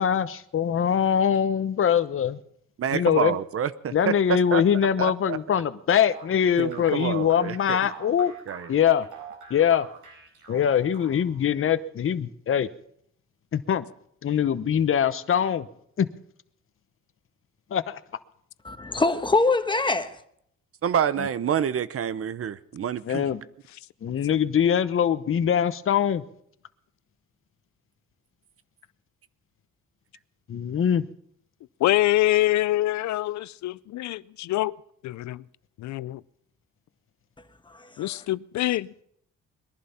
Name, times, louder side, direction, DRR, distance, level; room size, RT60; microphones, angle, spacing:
voice 1, 0.0-2.4 2.9-3.4 3.9-8.3 8.7-9.1 9.5-9.9 10.5-12.7 13.5-13.8 14.2-15.7 16.0-16.1 17.7-18.0 21.2-21.3 23.0-23.4 24.0-26.2 30.5-31.1, left 8 dB, 45° left, 0.9 m, -23 dB
voice 2, 2.8-4.6 5.0-5.4 6.6-7.8 8.5-8.7 20.8-23.2, right 8 dB, 50° right, 0.8 m, -27 dB
sound 1, 6.1-11.4, right 6 dB, 90° right, 4.7 m, -45 dB
voice 3, 18.6-20.2 37.7-38.2, left 3 dB, 15° left, 1.2 m, -24 dB
voice 4, 31.8-34.8 35.0-35.4 35.8-36.2 38.0-39.0, left 15 dB, 70° left, 0.5 m, -25 dB
21.0 x 11.5 x 5.7 m
cardioid pair, 90°, 30 cm